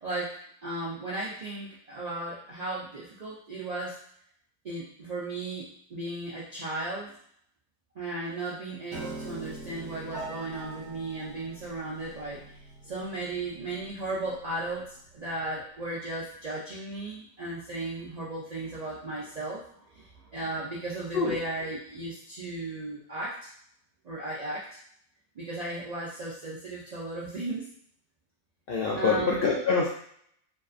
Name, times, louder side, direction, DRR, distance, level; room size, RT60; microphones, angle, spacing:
voice 1, 0.0-4.0 4.6-7.2 8.0-12.6 12.8-19.6 19.9-23.5 24.0-24.7 25.4-27.7 29.0-29.5, right 2 dB, 75° right, -7 dB, 0.3 m, -35 dB
Piano, 8.9-15.1, right 2 dB, 60° right, 1.1 m, -44 dB
voice 2, 28.7-29.9, left 4 dB, 65° left, -5 dB, 0.5 m, -25 dB
2.6 x 2.5 x 2.3 m, 0.63 s
omnidirectional pair, 1.4 m